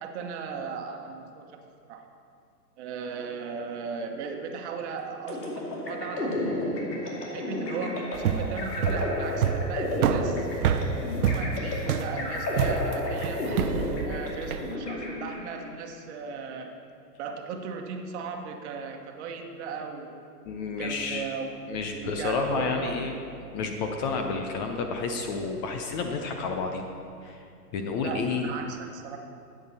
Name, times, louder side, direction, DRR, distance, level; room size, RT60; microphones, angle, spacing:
voice 1, 0.0-1.5 1.9-2.1 2.8-6.6 7.2-10.5 11.2-13.5 14.0-16.7 17.2-20.2 20.6-23.0 23.4-23.5 28.0-29.2, right 5 dB, 45° right, 4 dB, 1.3 m, -37 dB
sound 1, 5.3-15.7, left 1 dB, 80° left, 2.7 m, -32 dB
sound 2, 8.1-14.7, right 8 dB, 60° right, 0.8 m, -27 dB
voice 2, 20.4-21.2 21.7-23.1 23.5-26.9 27.2-27.4 27.7-28.5, left 4 dB, 30° left, 4 dB, 0.7 m, -30 dB
13.0 x 9.0 x 4.2 m, 2.4 s
hypercardioid pair, 130°, 48 cm